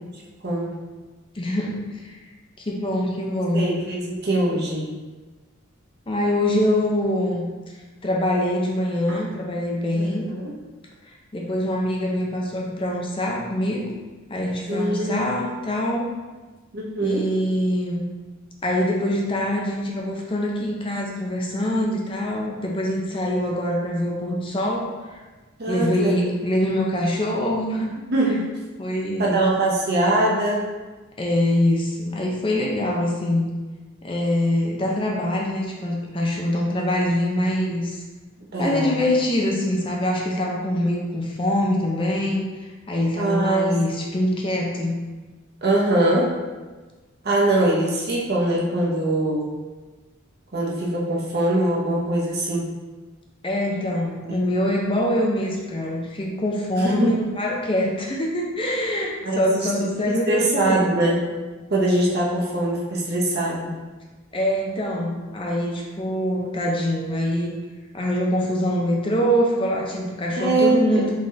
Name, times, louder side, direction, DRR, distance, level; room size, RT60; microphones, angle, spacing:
voice 1, 1.3-2.2 2.6-3.6 6.1-7.4 8.0-10.3 11.3-13.9 14.3-16.1 17.0-18.1 18.6-24.9 25.7-27.9 28.8-29.5 31.2-33.5 34.0-38.0 38.6-45.0 53.4-60.9 64.3-67.5 67.9-71.1, left 1 dB, 25° left, -2 dB, 0.5 m, -24 dB
voice 2, 3.5-4.9 9.1-9.2 10.2-10.5 14.7-15.3 16.7-17.3 25.6-26.2 28.1-28.5 29.2-30.7 38.5-39.0 43.2-43.8 45.6-46.4 47.2-49.5 50.5-52.7 54.3-54.4 56.8-57.2 59.2-59.7 60.0-61.4 61.7-63.7 70.4-71.0, right 1 dB, 50° right, -3 dB, 0.9 m, -22 dB
3.9 x 3.6 x 3.2 m, 1.3 s
head